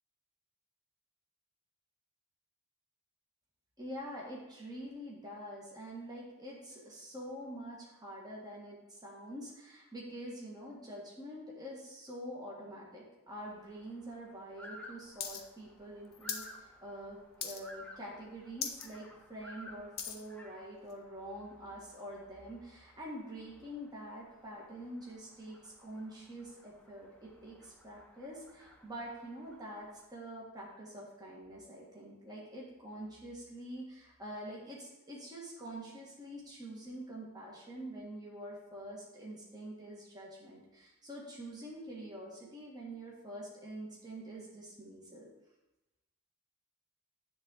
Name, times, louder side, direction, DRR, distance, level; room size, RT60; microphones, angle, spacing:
voice 1, 3.8-45.3, right 1 dB, 20° right, -4 dB, 1.7 m, -46 dB
sound 1, 13.3-30.1, left 1 dB, 5° left, 0.8 m, -57 dB
sound 2, 15.2-15.4 15.7-16.5 16.9-17.1 17.4-17.9 18.2-18.3 18.5-18.9 19.3-20.2 20.9-21.0, left 7 dB, 45° left, 1.0 m, -39 dB
10.0 x 3.8 x 6.3 m, 0.97 s
head